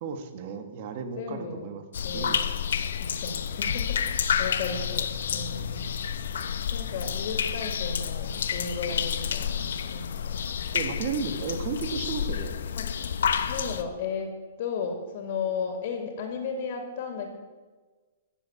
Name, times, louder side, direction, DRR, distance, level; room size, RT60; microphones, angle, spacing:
voice 1, 0.0-1.8 2.1-2.4 7.0-7.1 8.9-9.0 10.7-12.5, right 5 dB, 40° right, 7 dB, 1.5 m, -34 dB
voice 2, 1.2-1.8 2.0-2.5 3.0-5.9 6.7-10.2 12.8-12.9 13.5-17.3, left 5 dB, 45° left, 3 dB, 2.4 m, -34 dB
sound 1, 1.9-13.8, left 8 dB, 75° left, 0.9 m, -29 dB
15.5 x 7.3 x 8.2 m, 1.3 s
hypercardioid pair, 160°, 0 cm